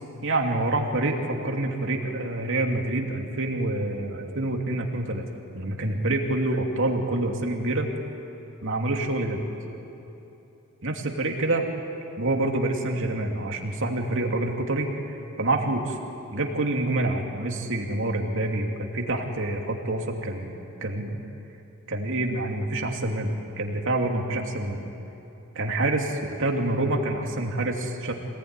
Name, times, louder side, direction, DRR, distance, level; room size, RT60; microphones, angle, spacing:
voice 1, 0.2-5.2 5.5-7.9 8.6-9.4 10.8-11.7 12.2-16.0 16.3-20.5 20.8-21.2 21.9-24.8 25.5-28.1, right 2 dB, 65° right, 2 dB, 2.7 m, -27 dB
26.5 x 19.0 x 9.7 m, 3.0 s
head